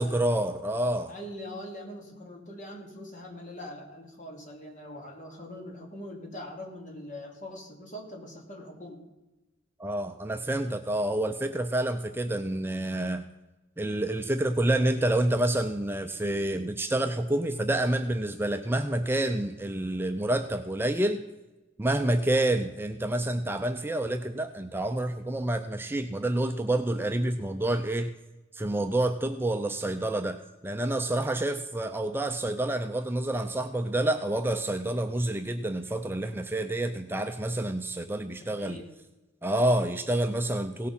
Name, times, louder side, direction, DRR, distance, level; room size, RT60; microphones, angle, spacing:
voice 1, 0.0-1.1 9.8-13.2 13.8-21.2 21.8-28.1 28.5-30.4 30.6-38.8 39.4-40.9, right 1 dB, 10° right, 6 dB, 0.5 m, -28 dB
voice 2, 1.1-9.0 38.6-38.9, left 1 dB, 40° left, 1 dB, 2.6 m, -42 dB
17.5 x 6.5 x 5.5 m, 1.1 s
head